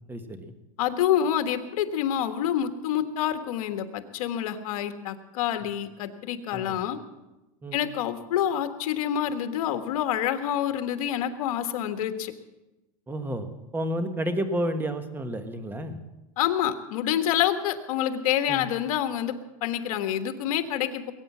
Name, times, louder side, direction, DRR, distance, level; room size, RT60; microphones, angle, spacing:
voice 1, 0.1-0.5 6.5-6.8 7.6-7.8 13.1-16.0 18.5-18.7, equal, 10° right, 9 dB, 1.3 m, -31 dB
voice 2, 0.8-7.0 7.7-12.3 16.4-19.4 19.6-21.1, left 10 dB, 75° left, 8 dB, 1.5 m, -27 dB
21.0 x 9.3 x 7.3 m, 1.0 s
supercardioid pair, 145°, 19 cm